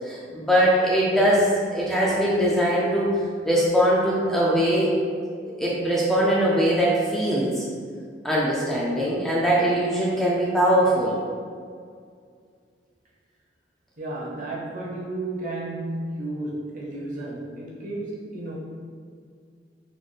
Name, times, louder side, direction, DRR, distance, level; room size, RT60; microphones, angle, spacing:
voice 1, 0.1-3.1 3.4-4.9 5.6-7.6 8.2-11.1, equal, ahead, -7 dB, 0.3 m, -21 dB
voice 2, 14.0-18.5, right 2 dB, 45° right, -5 dB, 0.7 m, -32 dB
3.9 x 2.1 x 3.2 m, 2.1 s
head